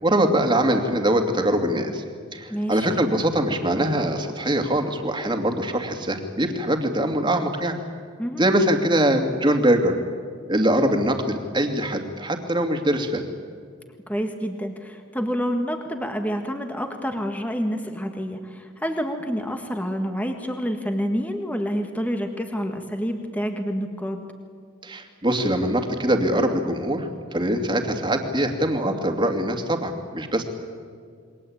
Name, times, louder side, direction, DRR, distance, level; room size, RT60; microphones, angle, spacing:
voice 1, 0.0-2.0 2.3-7.8 8.4-9.9 10.5-13.3 24.8-30.4, right 1 dB, 25° right, 4 dB, 2.5 m, -23 dB
voice 2, 2.5-2.9 8.2-8.4 14.1-24.2, equal, 10° left, 5 dB, 1.7 m, -28 dB
28.5 x 22.5 x 8.8 m, 2.1 s
head